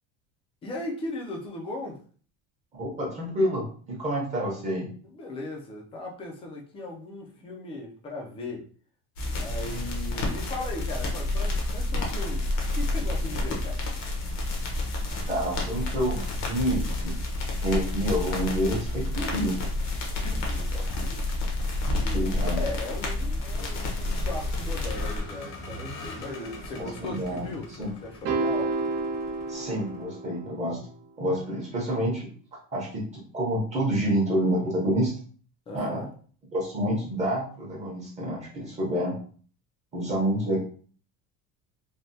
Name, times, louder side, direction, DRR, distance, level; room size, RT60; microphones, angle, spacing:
voice 1, 0.6-2.0 5.0-8.6 9.2-13.8 20.2-21.2 22.0-28.8 35.7-36.1, left 2 dB, 15° left, 0 dB, 0.3 m, -38 dB
voice 2, 2.7-4.9 15.3-17.2 17.6-19.6 22.1-22.6 26.8-27.5 27.8-27.9 29.5-30.9 31.2-32.3 32.7-35.1 35.7-36.0 36.5-39.1 39.9-40.6, equal, 20° right, -3 dB, 0.7 m, -28 dB
sound 1, 9.2-25.2, left 2 dB, 85° left, 1.1 m, -29 dB
Vehicle, 20.7-30.1, left 2 dB, 55° left, 0.8 m, -42 dB
sound 2, 28.3-30.7, right 3 dB, 75° right, 0.9 m, -30 dB
3.3 x 2.2 x 2.6 m, 0.43 s
cardioid pair, 180°, 35 cm